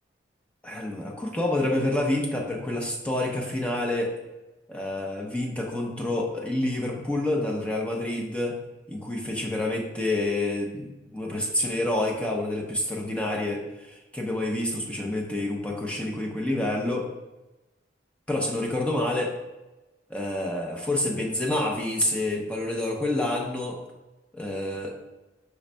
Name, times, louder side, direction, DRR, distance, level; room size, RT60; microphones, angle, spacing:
voice 1, 0.6-4.1 4.7-8.6 8.9-17.1 18.3-19.3 20.1-23.8 24.3-24.9, left 1 dB, 5° left, -2 dB, 0.7 m, -28 dB
6.1 x 3.9 x 2.2 m, 1.0 s
head